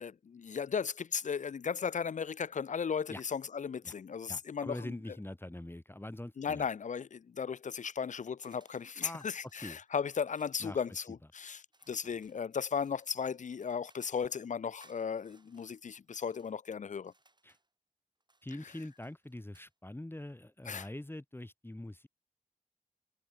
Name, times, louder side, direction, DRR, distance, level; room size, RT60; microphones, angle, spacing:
voice 1, 0.0-5.0 6.4-17.1 20.7-20.9, left 6 dB, 80° left, 0.5 m, -36 dB
voice 2, 4.3-6.7 9.0-9.3 9.6-9.8 10.6-10.8 17.4-17.6 18.4-22.1, left 1 dB, 20° left, 1.9 m, -44 dB
sound 1, 8.4-10.6 11.7-14.3 14.8-16.5 17.0-17.7 18.2-19.7, right 2 dB, 35° right, 7.5 m, -69 dB
wide cardioid pair, 65°, 12 cm